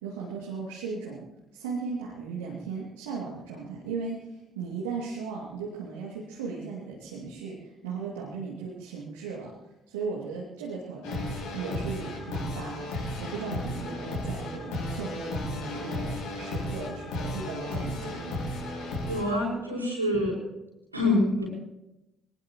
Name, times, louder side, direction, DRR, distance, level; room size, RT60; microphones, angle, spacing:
voice 1, 0.0-1.2 1.5-9.5 9.9-11.3 11.5-12.9 13.2-18.4, right 5 dB, 70° right, -4 dB, 2.6 m, -37 dB
sound 1, 11.0-19.5, left 1 dB, 65° left, 5.6 m, -34 dB
voice 2, 19.1-20.3 20.9-21.5, left 1 dB, 85° right, -4 dB, 5.7 m, -26 dB
23.5 x 19.5 x 3.1 m, 0.93 s
figure-of-eight pair, 45°, 0 cm